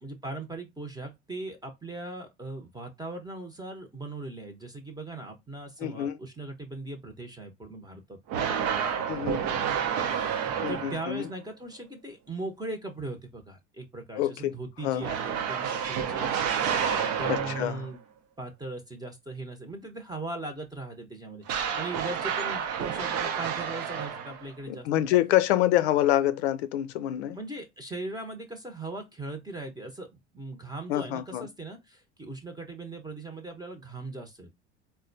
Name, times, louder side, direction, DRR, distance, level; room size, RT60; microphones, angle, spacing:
voice 1, 0.0-9.6 10.1-18.0 18.4-24.9 27.3-34.5, right 2 dB, 10° right, 0.9 m, -39 dB
voice 2, 5.8-6.2 9.1-9.4 10.6-11.3 14.2-14.5 14.8-15.1 17.3-17.9 24.7-27.4 30.9-31.5, left 13 dB, 70° left, 0.6 m, -26 dB
sound 1, 8.3-11.3 15.0-17.9 21.5-24.6, right 7 dB, 55° right, 0.8 m, -30 dB
4.1 x 2.2 x 2.6 m
hypercardioid pair, 75°, 34 cm